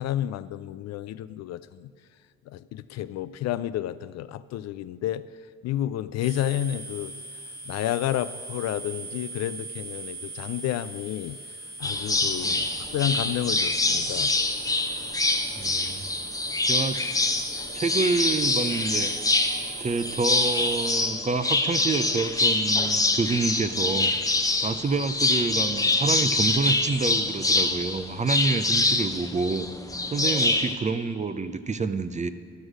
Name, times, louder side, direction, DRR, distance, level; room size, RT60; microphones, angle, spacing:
voice 1, 0.0-1.9 2.5-5.2 5.6-7.1 7.7-11.4 11.8-12.6 12.9-14.3, left 12 dB, 55° left, 14 dB, 0.4 m, -30 dB
sound 1, 6.2-21.0, right 3 dB, 80° right, 1.7 m, -40 dB
sound 2, 11.8-30.7, left 2 dB, 10° left, 0.8 m, -25 dB
voice 2, 15.6-16.0 16.7-17.0 17.7-19.1 19.8-24.1 24.6-29.7 30.1-32.3, right 4 dB, 20° right, 12 dB, 0.6 m, -28 dB
13.0 x 6.2 x 6.1 m, 2.3 s
hypercardioid pair, 60°, 32 cm